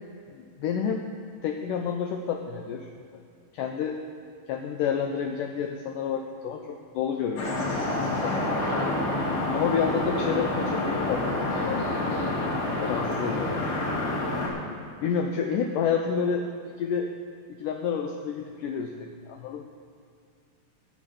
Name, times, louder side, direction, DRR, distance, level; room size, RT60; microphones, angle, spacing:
voice 1, 0.3-1.1 1.4-2.9 3.5-4.0 4.5-8.7 9.5-11.8 12.8-13.7 15.0-16.5 16.8-17.1 17.6-19.7, left 7 dB, 85° left, 4 dB, 1.9 m, -29 dB
sound 1, 7.4-14.5, left 2 dB, 55° left, 3.5 m, -28 dB
11.5 x 9.2 x 7.0 m, 2.3 s
omnidirectional pair, 4.5 m